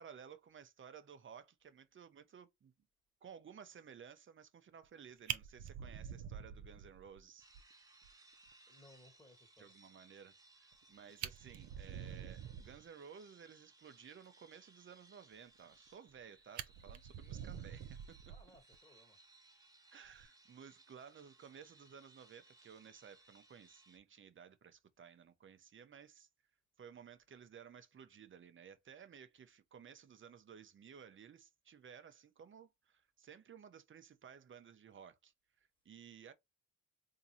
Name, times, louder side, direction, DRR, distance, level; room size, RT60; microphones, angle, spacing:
voice 1, 0.0-2.7 3.2-7.5 9.6-18.2 19.9-26.3 26.8-36.3, right 7 dB, 40° right, 0.8 m, -56 dB
Fire, 4.8-5.0 5.3-7.2 7.6-7.7 8.0-8.1 8.5-8.6 10.7-10.8 11.1-12.8 15.7-16.2 16.6-18.8 20.1-20.3, right 10 dB, 70° right, 0.6 m, -46 dB
sound 1, 7.4-24.0, right 2 dB, 10° right, 1.0 m, -65 dB
voice 2, 8.7-9.7 18.2-19.2, left 1 dB, 15° left, 1.5 m, -63 dB
3.7 x 2.8 x 2.7 m
cardioid pair, 90°, 30 cm